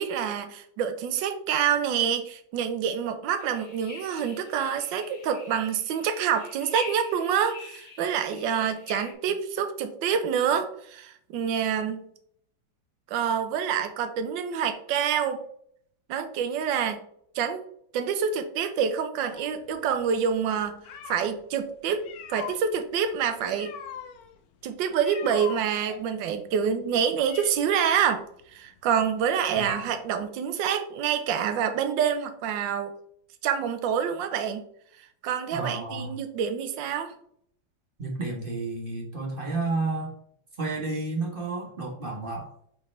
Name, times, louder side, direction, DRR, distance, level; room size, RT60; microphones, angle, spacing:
voice 1, 0.0-12.0 13.1-15.4 16.1-17.0 17.3-17.6 17.9-22.0 22.3-23.7 24.6-28.2 28.5-32.9 33.4-34.6 35.2-37.1, right 7 dB, 75° right, 8 dB, 1.4 m, -27 dB
sound 1, 3.4-9.1, left 3 dB, 25° left, 1.2 m, -44 dB
sound 2, 19.3-21.4 21.9-30.3, left 8 dB, 65° left, 0.9 m, -42 dB
voice 2, 35.5-36.2 38.0-40.1 40.6-42.5, right 3 dB, 30° right, -1 dB, 1.2 m, -31 dB
8.8 x 3.7 x 3.2 m, 0.67 s
omnidirectional pair, 2.1 m